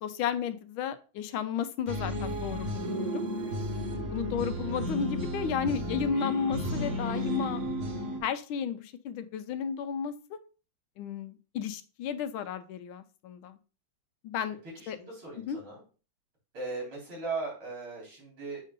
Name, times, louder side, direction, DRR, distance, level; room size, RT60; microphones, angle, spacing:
voice 1, 0.0-3.2 4.1-7.6 8.2-10.4 11.0-13.6 14.2-14.6 14.9-15.0 15.5-15.6, left 7 dB, 85° left, 11 dB, 1.4 m, -33 dB
sound 1, 1.9-8.2, equal, 45° right, 1.3 m, -33 dB
voice 2, 4.1-4.4 14.7-15.8 16.5-18.6, right 3 dB, 85° right, -4 dB, 4.3 m, -38 dB
7.3 x 2.7 x 5.2 m, 0.36 s
omnidirectional pair, 2.2 m